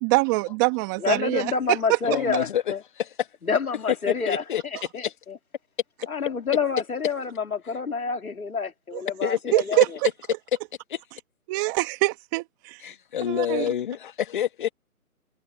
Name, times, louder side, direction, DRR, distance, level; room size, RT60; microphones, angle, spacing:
voice 1, 0.0-2.0 8.9-9.0 9.5-9.9 11.5-12.8 13.3-13.6, right 25 dB, 15° right, 1.6 m, -24 dB
voice 2, 1.0-2.8 3.4-4.4 4.9-5.4 6.1-10.0, left 5 dB, 70° left, 2.8 m, -28 dB
voice 3, 2.0-2.6 3.0-3.3 4.3-5.1 9.2-9.4 10.9-11.0 12.8-14.7, left 10 dB, 35° left, 1.9 m, -28 dB
figure-of-eight pair, 150°, 44 cm